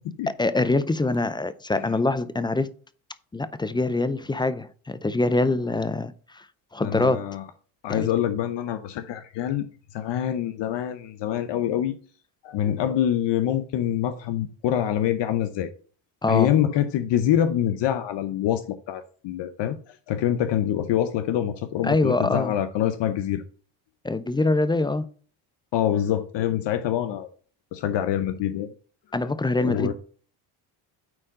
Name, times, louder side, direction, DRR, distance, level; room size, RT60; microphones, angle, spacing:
voice 1, 0.3-2.7 3.3-6.5 6.7-7.2 7.9-8.1 16.2-16.5 21.8-22.5 24.0-25.1 29.1-29.9, left 2 dB, 10° left, 0.4 m, -24 dB
voice 2, 6.8-7.4 7.8-9.7 9.9-12.0 12.4-15.7 16.3-23.4 25.7-27.3 27.7-28.7 29.6-29.9, left 10 dB, 60° left, 0.8 m, -25 dB
8.8 x 4.3 x 3.7 m
supercardioid pair, 80°, 49 cm